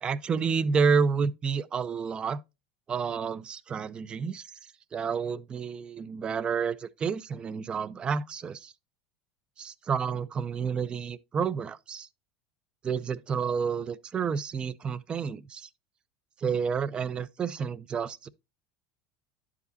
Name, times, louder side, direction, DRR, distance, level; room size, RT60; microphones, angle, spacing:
voice 1, 0.0-2.4 2.9-4.4 4.9-8.7 9.6-12.1 12.8-15.7 16.4-18.3, right 6 dB, 20° right, 0.4 m, -30 dB
11.5 x 4.9 x 2.6 m
supercardioid pair, 145°, 4 cm